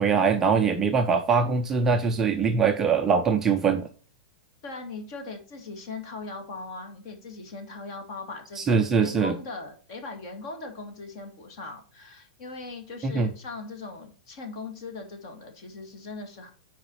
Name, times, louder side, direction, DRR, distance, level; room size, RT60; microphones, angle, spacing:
voice 1, 0.0-3.9 8.6-9.4 13.0-13.3, right 5 dB, 10° right, 4 dB, 0.4 m, -22 dB
voice 2, 4.6-16.5, left 3 dB, 40° left, 5 dB, 2.3 m, -39 dB
9.0 x 4.9 x 5.6 m, 0.39 s
supercardioid pair, 180°, 4 cm